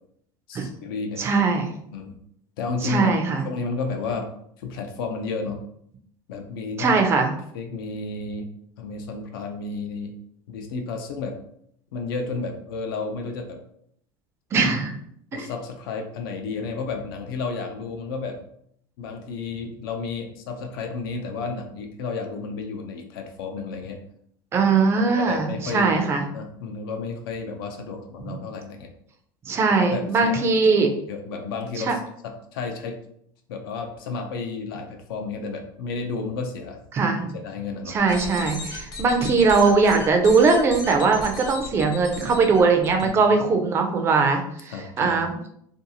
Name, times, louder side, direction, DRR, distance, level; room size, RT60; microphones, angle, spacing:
voice 1, 0.5-1.3 1.9-2.1 2.6-3.2 3.4-4.3 4.6-5.6 6.3-7.0 7.5-8.5 8.8-10.1 10.5-11.4 11.9-13.6 15.3-18.4 19.0-24.0 25.2-26.0 26.3-28.9 29.7-30.5 31.1-32.0 32.2-33.0 33.5-36.8 37.3-38.0 43.0-43.2 44.7-45.2, left 4 dB, 85° left, 4 dB, 0.5 m, -32 dB
voice 2, 1.2-1.7 2.8-3.5 6.8-7.3 14.5-14.9 15.3-15.5 24.5-26.2 29.5-30.9 31.8-31.9 36.9-37.3 37.9-45.4, right 4 dB, 20° right, 4 dB, 0.4 m, -20 dB
sound 1, 38.0-43.1, left 2 dB, 30° left, 0.7 m, -36 dB
2.6 x 2.3 x 2.7 m, 0.70 s
supercardioid pair, 155°, 12 cm